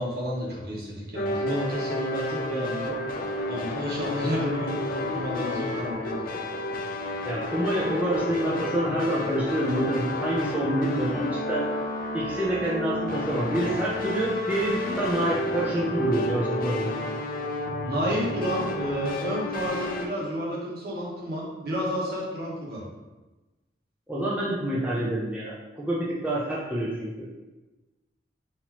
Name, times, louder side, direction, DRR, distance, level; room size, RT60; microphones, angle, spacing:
voice 1, 0.0-2.9 3.5-6.2 17.8-22.8, equal, 60° right, -4 dB, 1.2 m, -31 dB
sound 1, 1.1-20.0, left 1 dB, 50° left, 0.5 m, -31 dB
voice 2, 7.2-11.6 12.1-16.9 24.1-27.3, right 1 dB, 10° right, -7 dB, 0.7 m, -27 dB
5.8 x 2.9 x 3.0 m, 1.1 s
head